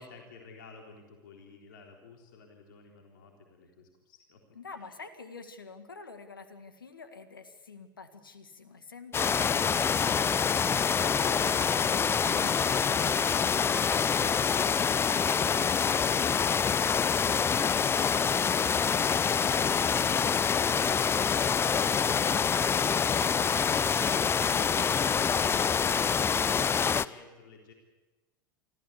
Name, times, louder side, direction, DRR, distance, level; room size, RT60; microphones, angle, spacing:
voice 1, 0.0-4.9, left 4 dB, 70° left, 2 dB, 3.8 m, -52 dB
voice 2, 4.5-9.8 24.5-24.9, left 4 dB, 90° left, 9 dB, 1.9 m, -47 dB
sound 1, 9.1-27.1, left 6 dB, 20° left, 0.6 m, -26 dB
sound 2, 11.0-19.6, right 3 dB, 15° right, 4.1 m, -50 dB
24.5 x 15.5 x 8.4 m, 1.1 s
hypercardioid pair, 85°, 11 cm